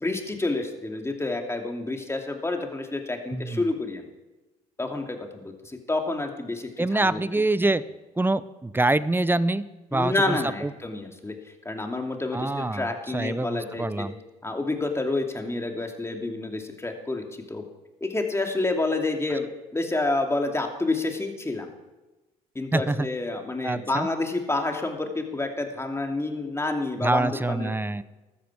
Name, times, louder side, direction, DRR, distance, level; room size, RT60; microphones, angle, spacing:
voice 1, 0.0-4.1 4.8-7.2 9.9-11.4 11.6-14.1 14.4-17.6 18.0-21.7 22.5-27.7, left 2 dB, 15° left, 3 dB, 2.7 m, -29 dB
voice 2, 3.3-3.7 6.8-7.8 8.2-9.6 9.9-10.7 12.3-14.1 22.7-23.1 23.6-24.1 27.0-28.0, right 2 dB, 10° right, 17 dB, 0.7 m, -25 dB
14.5 x 13.0 x 4.9 m, 1.1 s
hypercardioid pair, 55°, 18 cm